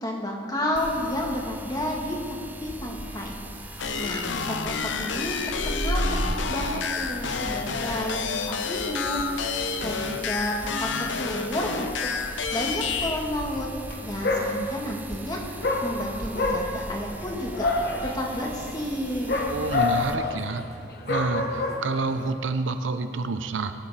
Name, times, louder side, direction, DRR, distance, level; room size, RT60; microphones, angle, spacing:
voice 1, 0.0-2.2 2.6-9.2 9.8-11.9 12.5-13.7 14.0-19.5, left 1 dB, 20° left, 0 dB, 1.6 m, -31 dB
sound 1, 0.7-20.1, right 1 dB, 10° right, 0.5 m, -37 dB
sound 2, 3.8-13.2, left 5 dB, 80° left, 0.7 m, -30 dB
Dog, 13.8-14.0 14.2-15.0 15.6-22.3, left 3 dB, 55° left, 1.4 m, -28 dB
voice 2, 19.5-20.6 21.1-23.7, right 3 dB, 85° right, 9 dB, 0.7 m, -28 dB
18.5 x 8.8 x 4.1 m, 2.3 s
head